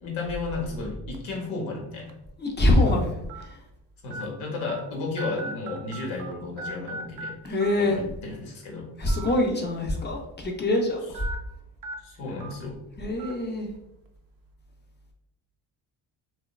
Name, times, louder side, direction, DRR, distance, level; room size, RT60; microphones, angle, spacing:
voice 1, 0.0-2.1 4.0-8.9 12.0-12.8, left 3 dB, 80° left, -1 dB, 1.0 m, -33 dB
sound 1, 1.1-1.4 2.1-2.2 3.3-3.4 4.1-4.2 4.7-4.8 5.2-6.3 6.6-7.3 7.6-7.7 9.0-9.3 9.7-9.8 11.1-11.4 11.8-11.9 12.4-12.5 13.2-13.3, right 3 dB, 45° right, 0.5 m, -37 dB
voice 2, 2.4-3.1 3.4-3.6 7.4-8.0 9.0-11.3 13.0-13.7, left 1 dB, 25° left, 1 dB, 0.4 m, -24 dB
3.0 x 2.3 x 2.2 m, 0.85 s
cardioid pair, 95°, 48 cm